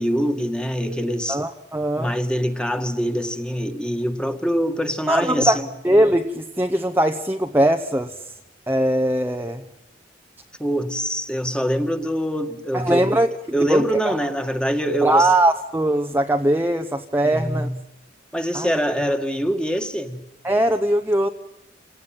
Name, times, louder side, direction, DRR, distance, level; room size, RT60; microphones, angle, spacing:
voice 1, 0.0-1.4 2.0-5.7 10.6-13.1 13.5-15.3 17.2-17.7 18.3-20.2, equal, 5° left, 2.0 m, -24 dB
voice 2, 1.3-2.1 5.1-8.2 8.7-9.6 12.7-13.3 13.7-14.2 15.0-17.7 18.5-19.1 20.4-21.3, right 1 dB, 10° right, 0.9 m, -20 dB
28.0 x 18.0 x 9.0 m
head